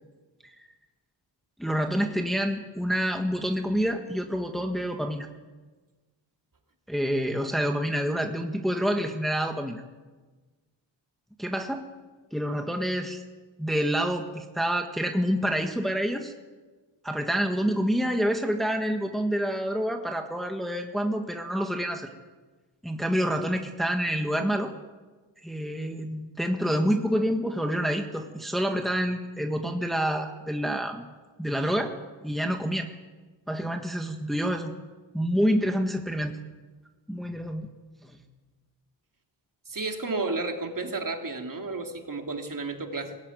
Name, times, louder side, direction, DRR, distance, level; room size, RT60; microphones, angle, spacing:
voice 1, 1.6-5.3 6.9-9.8 11.4-11.8 12.3-13.2 13.6-16.3 17.0-22.1 22.8-24.7 25.4-31.1 31.4-31.9 32.2-32.9 33.5-34.7 35.1-36.3 37.1-37.7 38.0-38.2, equal, ahead, 4 dB, 1.6 m, -27 dB
voice 2, 39.7-43.2, right 3 dB, 45° right, 3 dB, 2.8 m, -32 dB
23.0 x 18.0 x 9.4 m, 1.3 s
wide cardioid pair, 135°, 47 cm